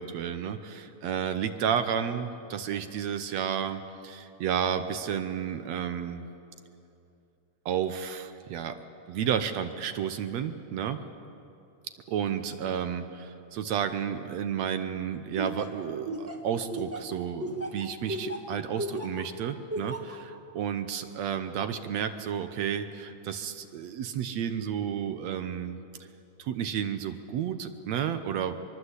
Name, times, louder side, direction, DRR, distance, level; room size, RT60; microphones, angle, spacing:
voice 1, 0.0-6.3 7.7-11.0 12.1-25.8 26.4-28.5, right 8 dB, 70° right, 9 dB, 1.9 m, -32 dB
Laughter, 15.4-19.2 19.7-20.2, right 1 dB, 5° right, 1.2 m, -34 dB
23.5 x 23.0 x 8.1 m, 2.7 s
omnidirectional pair, 3.6 m